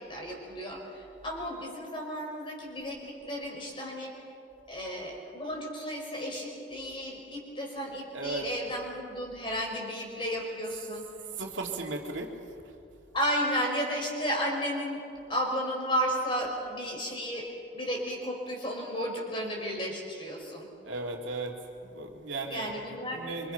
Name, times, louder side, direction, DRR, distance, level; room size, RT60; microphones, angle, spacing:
voice 1, 0.1-4.1 4.7-11.0 13.1-15.0 15.3-17.5 17.7-20.7 22.5-23.5, equal, 25° left, -1 dB, 4.8 m, -33 dB
voice 2, 8.1-8.5 11.3-12.3 20.9-21.5 21.9-22.7 23.1-23.5, right 3 dB, 75° right, 1 dB, 2.6 m, -35 dB
26.0 x 25.0 x 5.8 m, 2.6 s
head